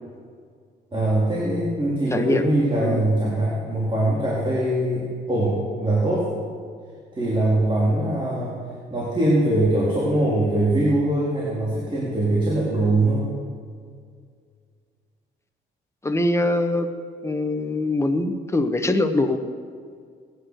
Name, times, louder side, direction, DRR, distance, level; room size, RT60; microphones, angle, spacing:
voice 1, 0.9-6.3 7.1-13.3, right 1 dB, 25° right, -6 dB, 4.2 m, -22 dB
voice 2, 2.1-2.5 2.8-3.0 16.0-16.9 17.2-19.4, left 2 dB, 15° left, 6 dB, 1.4 m, -23 dB
19.5 x 10.5 x 6.6 m, 2.1 s
cardioid pair, 90°, 20 cm